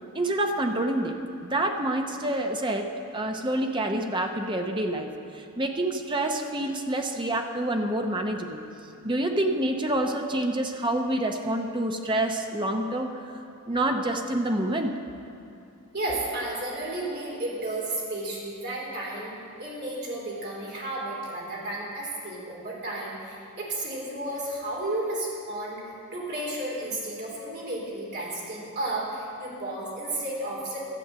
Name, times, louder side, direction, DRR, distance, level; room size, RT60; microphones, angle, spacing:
voice 1, 0.1-8.6 9.0-13.1 13.7-14.9, right 1 dB, 20° right, 4 dB, 0.7 m, -27 dB
voice 2, 15.9-25.8 26.1-30.9, right 1 dB, 45° right, -4 dB, 3.5 m, -33 dB
13.0 x 8.0 x 7.5 m, 2.7 s
head